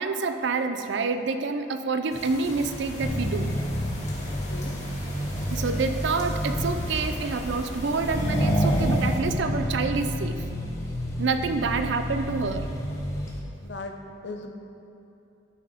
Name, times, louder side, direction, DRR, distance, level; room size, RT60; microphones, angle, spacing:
voice 1, 0.0-3.6 5.5-10.4 11.2-12.7, right 4 dB, 65° right, 8 dB, 0.4 m, -27 dB
sound 1, 2.1-9.2, left 1 dB, 35° left, 1.7 m, -39 dB
Accelerating revving vroom, 3.0-13.4, equal, 15° left, 0.9 m, -29 dB
voice 2, 4.3-4.8 11.6-11.7 13.6-14.5, left 2 dB, 60° left, 4 dB, 0.7 m, -39 dB
12.0 x 4.5 x 5.0 m, 2.8 s
head